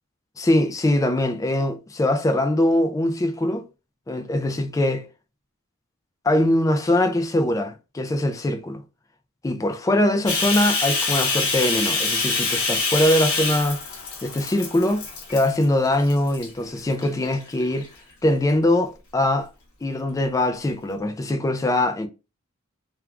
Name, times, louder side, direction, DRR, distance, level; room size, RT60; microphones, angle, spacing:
voice 1, 0.4-3.7 4.1-5.1 6.2-8.8 9.4-13.8 14.2-15.0 15.3-17.9 18.2-19.5 19.8-22.1, left 1 dB, 15° left, 0.3 m, -22 dB
Bathtub (filling or washing), 10.3-15.6 16.1-16.5 17.0-17.8, left 3 dB, 70° left, 0.9 m, -25 dB
2.4 x 2.3 x 3.1 m
head